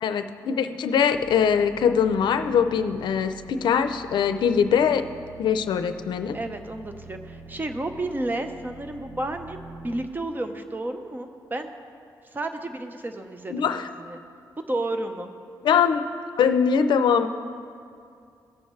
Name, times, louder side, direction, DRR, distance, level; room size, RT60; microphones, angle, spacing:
voice 1, 0.0-5.1 5.4-6.4 13.5-13.9 15.6-16.1 16.4-17.3, left 7 dB, 90° left, 9 dB, 0.5 m, -22 dB
sound 1, 1.1-10.1, right 3 dB, 75° right, 0.7 m, -46 dB
voice 2, 6.3-11.7 12.3-14.2 14.6-15.3, right 2 dB, 25° right, 6 dB, 0.8 m, -32 dB
17.5 x 7.0 x 3.2 m, 2.4 s
cardioid pair, 90°, 8 cm